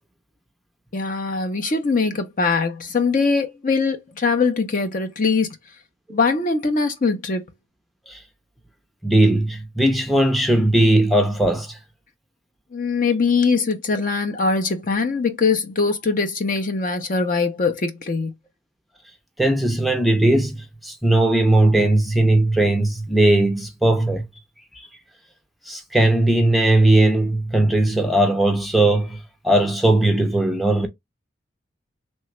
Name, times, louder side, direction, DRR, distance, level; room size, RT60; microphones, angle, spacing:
voice 1, 0.9-5.5 6.1-7.4 12.7-18.3, left 4 dB, 45° left, 0.6 m, -22 dB
voice 2, 9.0-11.8 19.4-24.2 24.7-24.9 25.7-30.9, right 1 dB, ahead, 0.5 m, -18 dB
3.2 x 2.3 x 3.0 m
head